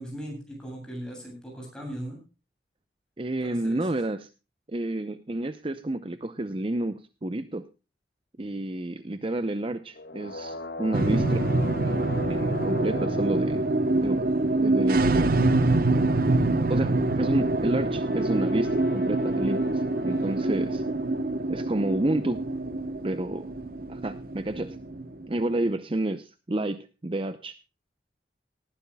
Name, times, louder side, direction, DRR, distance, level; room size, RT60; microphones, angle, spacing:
voice 1, 0.0-2.2 3.4-3.9, equal, 5° left, 0 dB, 7.8 m, -38 dB
voice 2, 3.2-4.3 4.7-7.7 8.4-11.4 11.8-12.0 12.3-13.6 14.0-15.3 16.4-20.8 21.5-22.4 23.0-23.5 23.9-24.8 25.3-27.6, right 1 dB, 30° right, 12 dB, 0.6 m, -30 dB
sound 1, 9.9-14.5 17.9-20.8, left 1 dB, 60° left, 1.5 m, -40 dB
sound 2, 10.9-25.6, right 2 dB, 50° right, 0.9 m, -25 dB
19.0 x 14.5 x 2.2 m, 0.30 s
head